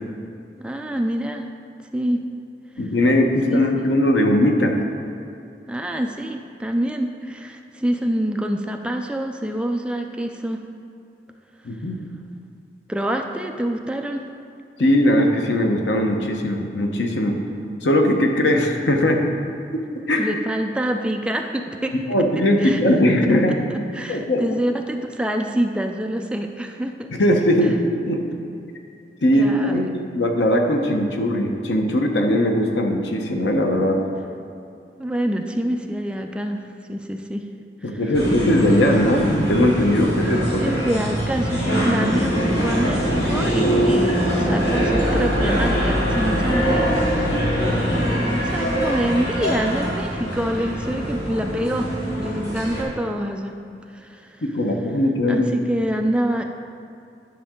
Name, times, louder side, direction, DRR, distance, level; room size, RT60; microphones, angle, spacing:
voice 1, 0.6-1.5 1.9-2.2 3.5-3.9 5.7-10.6 12.9-14.2 20.2-21.9 22.6-23.1 23.5-27.1 29.4-29.9 35.0-37.5 37.8-38.0 40.6-51.9 52.2-53.5 53.9-54.4 55.3-56.4, right 1 dB, 5° right, 3 dB, 0.3 m, -26 dB
voice 2, 2.8-4.8 11.6-12.0 14.8-17.4 17.8-19.2 19.7-19.8 20.1-20.3 22.1-23.6 24.1-24.4 27.1-27.8 28.1-28.2 29.2-34.0 37.8-40.7 54.4-55.5, left 1 dB, 90° left, 3 dB, 0.9 m, -19 dB
sound 1, 38.1-52.8, equal, 65° left, 2.0 m, -22 dB
10.0 x 5.9 x 3.7 m, 2.6 s
head